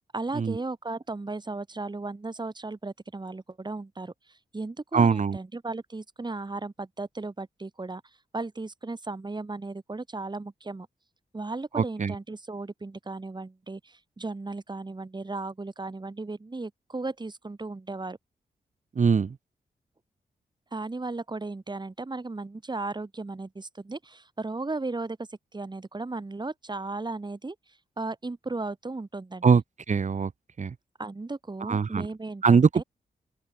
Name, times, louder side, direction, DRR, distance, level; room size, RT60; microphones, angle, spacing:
voice 1, 0.1-8.0 8.3-10.9 11.3-18.2 20.7-27.6 28.0-29.6 31.0-32.8, right 3 dB, 30° right, 6.0 m, -35 dB
voice 2, 4.9-5.4 11.8-12.1 19.0-19.4 29.4-29.6 29.9-30.3 30.6-30.7 31.7-32.1 32.4-32.8, right 5 dB, 50° right, 1.9 m, -22 dB
open air
cardioid pair, 70°, 15 cm